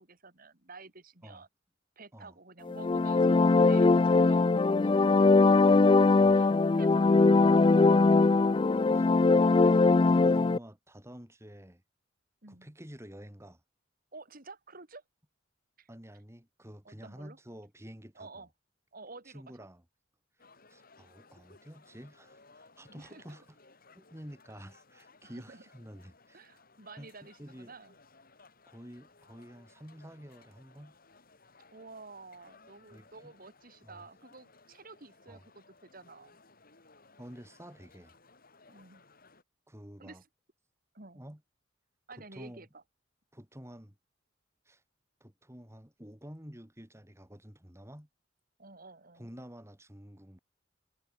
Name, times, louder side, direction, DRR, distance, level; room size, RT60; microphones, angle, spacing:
voice 1, 0.0-1.5 2.0-5.6 6.2-8.6 12.4-12.7 14.1-15.0 15.8-15.9 16.8-17.4 18.1-18.5 18.9-19.4 22.9-23.4 25.2-25.6 26.3-27.9 31.7-36.4 38.7-39.0 40.0-40.3 40.9-41.2 42.1-42.8 48.6-49.3, right 3 dB, 45° right, 3.1 m, -51 dB
sound 1, 2.7-10.6, left 3 dB, 25° left, 0.4 m, -21 dB
voice 2, 9.7-11.8 12.5-13.6 15.9-18.4 19.3-19.8 20.7-23.5 23.9-26.5 27.0-27.8 28.7-31.0 32.9-33.3 33.8-34.0 35.3-35.4 37.2-38.1 39.7-40.2 41.1-41.4 42.3-42.7 43.3-44.0 44.7-44.8 45.2-48.1 49.2-50.4, equal, 15° right, 3.6 m, -49 dB
sound 2, 20.4-39.4, left 3 dB, 50° left, 6.7 m, -61 dB
head